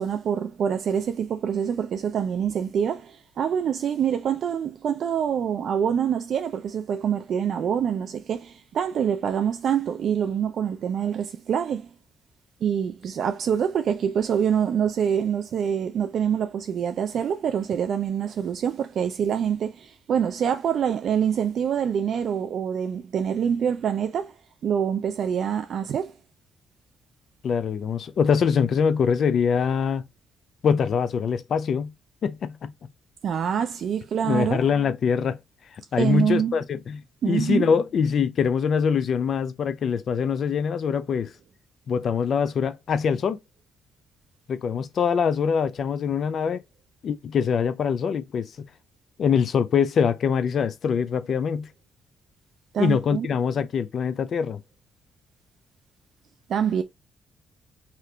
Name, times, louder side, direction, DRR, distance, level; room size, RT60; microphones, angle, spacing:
voice 1, 0.0-11.9 12.6-24.3 24.6-26.1 33.2-34.6 36.0-36.5 37.2-37.7 52.7-53.3 56.5-56.8, right 8 dB, 65° right, 0.3 m, -25 dB
voice 2, 27.4-30.0 30.6-31.9 32.2-32.7 34.2-35.4 35.9-41.3 41.9-43.4 44.5-46.6 47.0-48.5 49.2-51.7 52.8-54.6, left 6 dB, 60° left, 0.4 m, -23 dB
2.8 x 2.4 x 3.3 m
cardioid pair, 90°, 0 cm